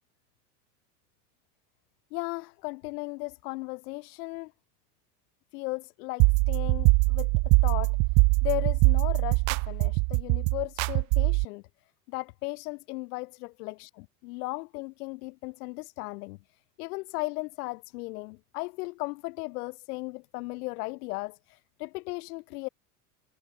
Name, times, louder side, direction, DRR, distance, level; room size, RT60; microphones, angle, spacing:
voice 1, 2.1-4.5 5.5-8.0 8.4-11.6 12.1-16.4 16.8-22.7, left 24 dB, 70° left, 6.3 m, -36 dB
sound 1, 6.2-11.4, right 31 dB, 60° right, 2.3 m, -23 dB
hypercardioid pair, 100°, 48 cm